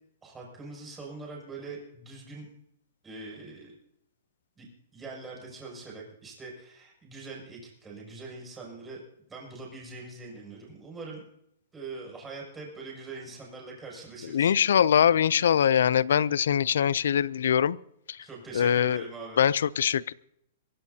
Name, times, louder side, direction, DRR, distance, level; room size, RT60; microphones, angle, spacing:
voice 1, 0.2-2.5 3.0-3.7 4.6-9.0 9.3-11.2 11.7-14.5 18.2-19.4, right 3 dB, 10° right, -3 dB, 6.7 m, -43 dB
voice 2, 14.3-17.8 18.1-18.3 18.5-19.0 19.4-20.1, left 8 dB, 75° left, 21 dB, 0.5 m, -23 dB
23.5 x 16.5 x 2.8 m, 0.75 s
hypercardioid pair, 150°, 0 cm